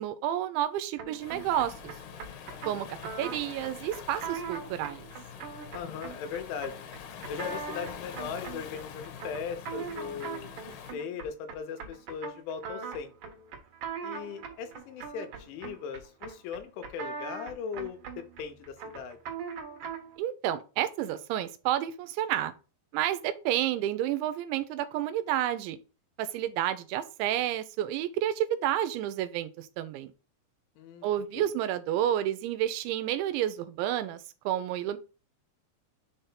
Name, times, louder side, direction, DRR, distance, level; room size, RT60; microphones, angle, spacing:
voice 1, 0.0-1.7 2.6-5.1 20.2-22.5 22.9-25.8 26.2-30.1 31.0-35.0, right 12 dB, 85° right, 3.0 m, -30 dB
sound 1, 1.0-20.2, right 6 dB, 55° right, 2.6 m, -41 dB
Waves surf, 1.2-11.0, left 7 dB, 70° left, 2.6 m, -45 dB
voice 2, 5.7-6.9 7.3-10.5 10.9-13.1 14.0-19.2 30.8-31.5, left 7 dB, 90° left, 3.4 m, -39 dB
7.1 x 3.4 x 5.7 m
omnidirectional pair, 5.3 m